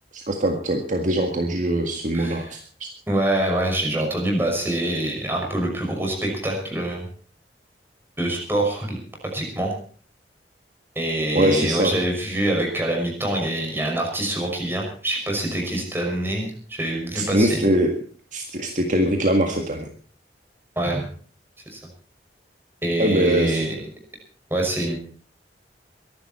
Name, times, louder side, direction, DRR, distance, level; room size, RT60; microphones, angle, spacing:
voice 1, 0.1-2.9 11.3-11.9 17.1-17.9 18.3-19.9 23.0-23.6, right 1 dB, 45° right, 3 dB, 1.9 m, -22 dB
voice 2, 2.1-2.5 3.1-7.1 8.2-9.0 9.3-9.7 11.0-17.6 20.8-21.1 21.7-21.8 22.8-23.8 24.5-25.0, right 1 dB, 15° right, 0 dB, 5.9 m, -25 dB
23.0 x 11.5 x 4.4 m, 0.43 s
head